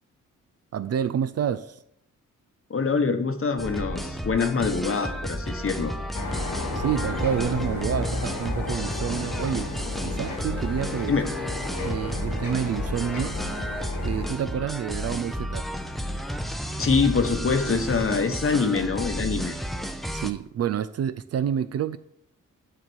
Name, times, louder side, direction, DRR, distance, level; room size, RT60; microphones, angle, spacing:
voice 1, 0.7-1.8 6.7-9.7 10.0-11.1 11.8-13.4 14.0-15.7 20.1-22.0, right 9 dB, 50° right, 0.4 m, -28 dB
voice 2, 2.7-5.9 11.1-11.3 16.8-19.5, left 4 dB, 40° left, 1.0 m, -24 dB
sound 1, 3.6-20.3, equal, ahead, 0.6 m, -32 dB
sound 2, 6.1-14.3, left 3 dB, 70° left, 1.7 m, -33 dB
8.2 x 2.9 x 6.2 m
supercardioid pair, 50°, 33 cm